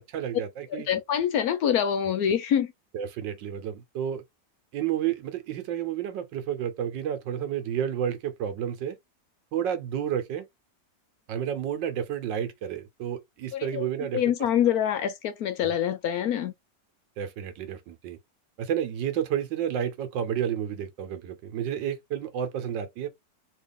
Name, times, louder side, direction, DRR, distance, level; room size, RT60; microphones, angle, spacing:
voice 1, 0.0-0.9 2.9-4.2 4.7-9.0 9.5-10.5 11.3-14.2 17.2-18.2 18.6-23.1, right 9 dB, 90° right, 1.5 m, -31 dB
voice 2, 0.7-2.7 13.5-13.9 14.1-16.5, left 9 dB, 70° left, 0.9 m, -25 dB
3.2 x 2.9 x 3.5 m
omnidirectional pair, 1.9 m